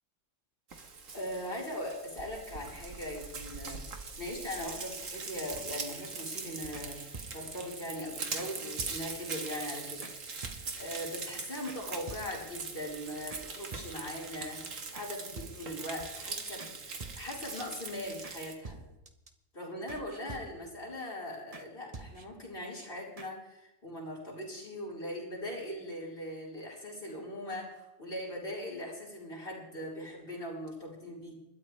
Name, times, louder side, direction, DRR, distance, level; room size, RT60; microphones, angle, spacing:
Frying (food), 0.7-18.5, right 4 dB, 85° right, 2.0 m, -42 dB
voice 1, 1.1-18.8 19.5-31.4, left 1 dB, 45° left, -3 dB, 5.0 m, -40 dB
sound 1, 5.5-6.1 6.7-7.7 8.4-8.5 8.8-9.3 9.6-9.7 10.0-10.2 10.4-11.0 11.7-11.8 12.1-12.7 13.3-14.2 14.9-15.1 15.4-15.9 16.2-16.3 16.6-16.7 17.0-17.5 18.2-18.4 18.6-19.3 19.9-20.8 21.5-21.7 21.9-22.5 22.8-22.9 23.2-23.3, right 3 dB, 30° right, 1.1 m, -48 dB
29.5 x 12.5 x 3.3 m, 0.90 s
omnidirectional pair, 1.3 m